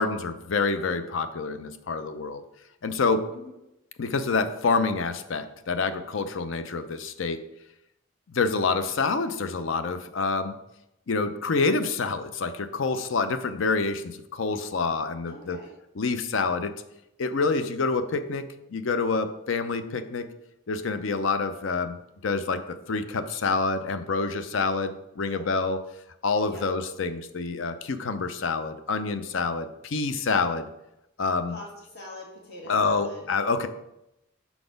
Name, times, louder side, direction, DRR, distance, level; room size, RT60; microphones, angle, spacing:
voice 1, 0.0-2.4 2.8-3.3 4.0-7.4 8.3-10.5 11.1-15.6 15.9-16.8 17.2-18.4 18.7-20.3 20.7-22.0 22.2-25.8 26.2-30.7 31.2-31.6 32.7-33.7, left 4 dB, 65° left, 10 dB, 0.5 m, -27 dB
voice 2, 15.3-15.7 25.2-25.4 26.4-26.7 31.5-33.2, left 1 dB, 50° left, -2 dB, 1.6 m, -43 dB
5.9 x 4.0 x 5.2 m, 0.86 s
head